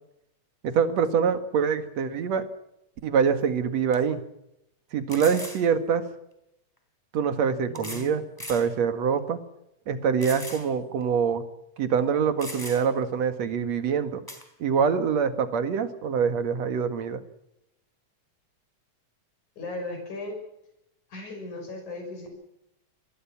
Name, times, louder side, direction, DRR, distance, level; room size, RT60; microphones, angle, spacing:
voice 1, 0.6-2.4 3.0-4.2 4.9-6.0 7.1-8.2 8.5-9.4 9.9-11.4 11.8-14.2 14.6-17.2, right 6 dB, 65° right, 9 dB, 3.0 m, -25 dB
sound 1, 3.3-3.4 3.9-4.0 5.1-5.6 6.8-6.9 7.7-8.1 8.4-8.7 9.2-9.3 10.2-10.7 11.0-11.1 12.0-12.1 12.4-13.0 14.3-14.4, left 1 dB, 5° left, 4.1 m, -39 dB
voice 2, 7.7-8.1 19.6-20.4 21.1-22.3, left 2 dB, 80° left, 4 dB, 7.4 m, -37 dB
27.5 x 20.5 x 6.0 m, 0.82 s
omnidirectional pair, 3.4 m